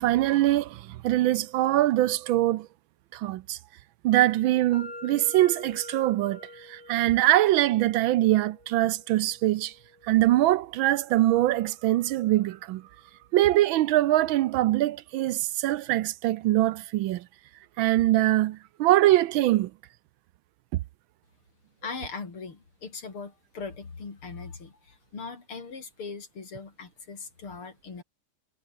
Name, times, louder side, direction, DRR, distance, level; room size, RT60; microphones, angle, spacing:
voice 1, 0.0-2.7 3.1-3.6 4.0-6.4 6.7-9.7 10.0-12.8 13.3-17.2 17.8-19.7 20.7-20.8, right 15 dB, 75° right, 1.3 m, -23 dB
sound 1, 4.7-12.6, left 1 dB, 25° left, 5.7 m, -48 dB
voice 2, 21.8-28.0, left 4 dB, 80° left, 4.8 m, -40 dB
omnidirectional pair, 2.3 m